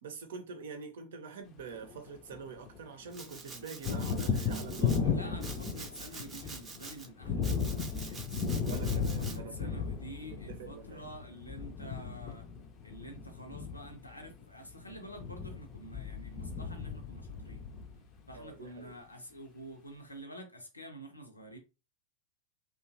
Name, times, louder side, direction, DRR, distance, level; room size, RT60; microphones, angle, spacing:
voice 1, 0.0-5.5 8.6-9.9 10.3-11.0 18.3-18.9, right 5 dB, 60° right, 0.6 m, -46 dB
Thunder, 1.6-2.8 3.1-18.3, left 6 dB, 30° left, 0.5 m, -35 dB
Domestic sounds home sounds, 3.1-5.0 5.4-7.1 7.4-9.4, right 4 dB, 20° right, 0.6 m, -47 dB
voice 2, 5.1-8.7 9.2-12.5 12.8-17.7 18.3-21.6, right 1 dB, 85° left, 0.7 m, -48 dB
2.8 x 2.3 x 2.6 m
figure-of-eight pair, 90°, 0 cm